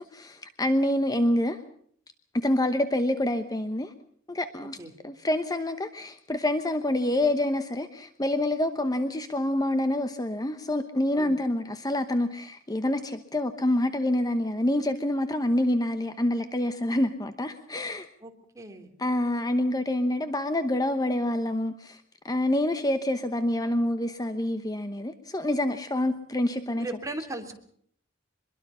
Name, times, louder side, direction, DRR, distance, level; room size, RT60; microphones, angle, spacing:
voice 1, 0.0-1.6 2.3-3.9 4.3-4.8 5.0-18.1 19.0-26.9, left 1 dB, 20° left, 9 dB, 1.0 m, -27 dB
voice 2, 18.2-18.9 26.8-27.5, right 2 dB, 15° right, 4 dB, 3.0 m, -37 dB
24.5 x 22.0 x 5.6 m, 0.62 s
head